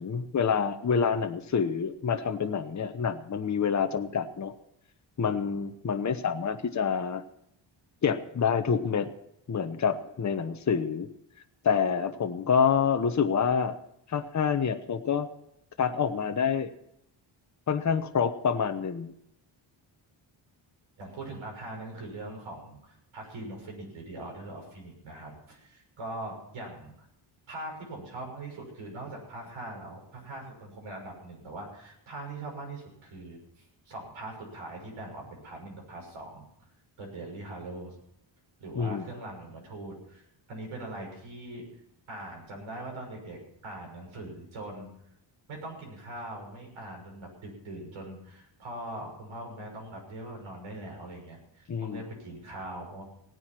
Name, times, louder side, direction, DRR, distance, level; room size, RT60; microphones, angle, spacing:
voice 1, 0.0-4.5 5.2-7.2 8.0-9.1 9.5-11.1 11.6-13.7 14.1-15.3 15.8-16.7 17.7-19.1 38.8-39.0 51.7-52.0, left 6 dB, 35° left, 7 dB, 1.0 m, -27 dB
voice 2, 21.0-26.9 27.5-36.5 37.0-38.0 38.6-41.6 42.1-44.9 45.5-53.0, right 2 dB, 80° right, 0 dB, 6.3 m, -41 dB
17.5 x 9.8 x 6.0 m, 0.75 s
cardioid pair, 105°, 47 cm